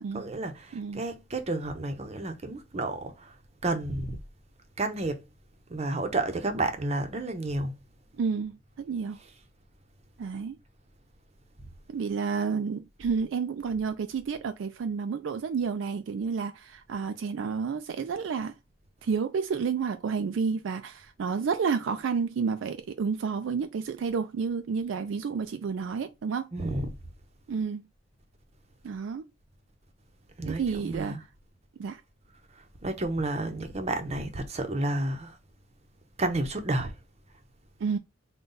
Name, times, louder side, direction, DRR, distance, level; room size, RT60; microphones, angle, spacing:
voice 1, 0.0-3.4 3.6-4.2 4.8-5.2 5.7-7.8 9.2-9.3 26.5-26.9 30.4-31.2 32.6-35.4 36.2-36.9, right 2 dB, 35° right, 0.7 m, -31 dB
voice 2, 8.2-9.2 10.2-10.6 11.9-18.5 19.0-26.5 27.5-27.8 28.8-29.3 30.5-31.2 31.8-32.0 37.8-38.0, right 5 dB, 70° right, 0.3 m, -30 dB
3.8 x 2.3 x 3.9 m
head